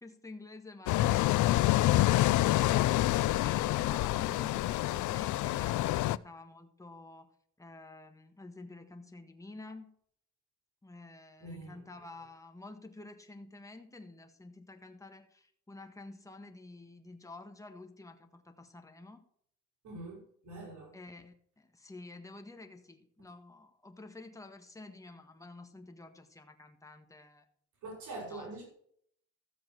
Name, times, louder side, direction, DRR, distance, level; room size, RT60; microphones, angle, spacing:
voice 1, 0.0-3.0 3.3-7.3 7.6-10.0 10.8-19.2 20.9-27.5 28.3-28.6, left 2 dB, 10° left, 5 dB, 1.5 m, -50 dB
sound 1, 0.9-6.2, left 16 dB, 75° left, 0.5 m, -27 dB
voice 2, 11.4-11.8 19.8-20.9 27.8-28.6, right 2 dB, 75° right, -1 dB, 5.1 m, -44 dB
14.5 x 7.6 x 4.5 m, 0.65 s
cardioid pair, 90°, 30 cm